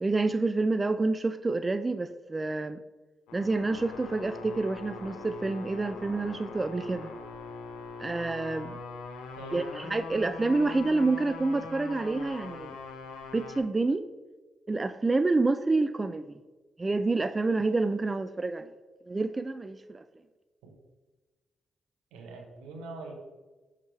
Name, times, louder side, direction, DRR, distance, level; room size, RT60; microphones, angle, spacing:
voice 1, 0.0-2.8 3.3-7.1 8.0-8.8 9.5-12.8 13.3-14.0 14.7-16.4 16.8-18.7 19.1-20.0, right 3 dB, 30° right, 11 dB, 0.4 m, -28 dB
sound 1, 3.3-13.6, left 4 dB, 80° left, 0.7 m, -42 dB
voice 2, 22.1-23.1, right 3 dB, 85° right, 1 dB, 1.1 m, -43 dB
6.3 x 5.7 x 3.3 m, 1.2 s
hypercardioid pair, 45°, 0 cm